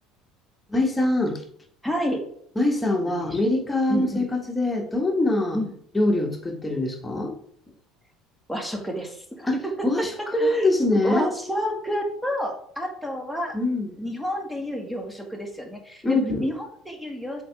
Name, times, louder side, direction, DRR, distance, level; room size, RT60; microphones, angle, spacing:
voice 1, 0.7-1.4 2.5-5.6 5.9-7.3 9.5-9.6 9.8-11.3 13.5-13.9 16.0-16.3, left 2 dB, 15° left, 2 dB, 1.6 m, -23 dB
voice 2, 1.8-2.2 3.0-3.4 3.9-4.3 5.5-5.7 8.5-9.9 10.4-13.6 14.0-17.4, equal, 5° right, 2 dB, 1.7 m, -30 dB
7.6 x 3.8 x 3.5 m, 0.66 s
figure-of-eight pair, 65°, 0 cm